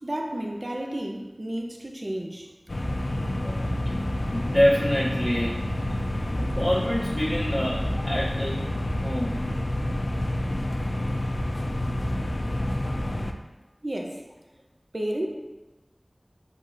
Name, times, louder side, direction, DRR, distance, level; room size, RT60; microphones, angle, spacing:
voice 1, 0.0-2.5 13.8-14.2 14.9-15.3, right 1 dB, 50° right, 1 dB, 0.6 m, -31 dB
sound 1, 2.7-13.3, left 1 dB, 75° left, 0.3 m, -28 dB
voice 2, 3.4-3.9 4.3-5.6 6.4-8.7 9.0-9.7, equal, 35° left, -9 dB, 0.7 m, -26 dB
7.0 x 2.9 x 2.5 m, 1.1 s
wide cardioid pair, 45°, 0 cm